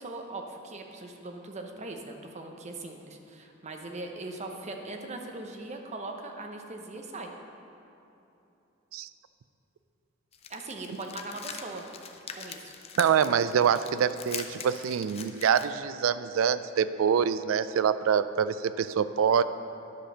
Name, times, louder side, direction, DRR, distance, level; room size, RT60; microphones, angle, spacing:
voice 1, 0.0-7.3 10.5-11.9 12.3-12.8, right 2 dB, 35° right, 3 dB, 0.8 m, -40 dB
sound 1, 10.3-15.7, left 7 dB, 30° left, 0.5 m, -42 dB
voice 2, 13.0-19.4, right 7 dB, 85° right, 13 dB, 0.3 m, -25 dB
10.5 x 5.0 x 6.3 m, 2.9 s
head